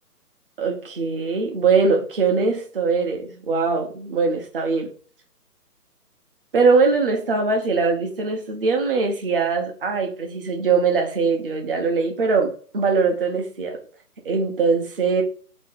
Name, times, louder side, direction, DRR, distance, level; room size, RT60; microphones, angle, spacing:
voice 1, 0.6-4.9 6.5-13.8 14.2-15.2, right 4 dB, 35° right, 1.0 m, -21 dB
3.8 x 3.1 x 3.7 m
figure-of-eight pair, 150°, 48 cm